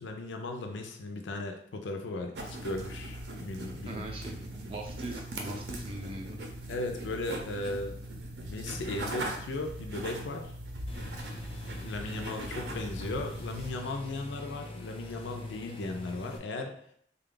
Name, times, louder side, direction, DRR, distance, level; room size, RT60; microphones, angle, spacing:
voice 1, 0.0-4.0 6.7-10.5 11.7-16.8, left 2 dB, 90° left, 4 dB, 0.5 m, -37 dB
sound 1, 2.4-13.7, right 1 dB, 70° right, 0.6 m, -40 dB
voice 2, 3.9-6.4, right 2 dB, 30° right, 1 dB, 0.4 m, -41 dB
sound 2, 10.9-16.4, left 1 dB, 30° left, 0.4 m, -43 dB
3.4 x 2.3 x 3.7 m, 0.64 s
head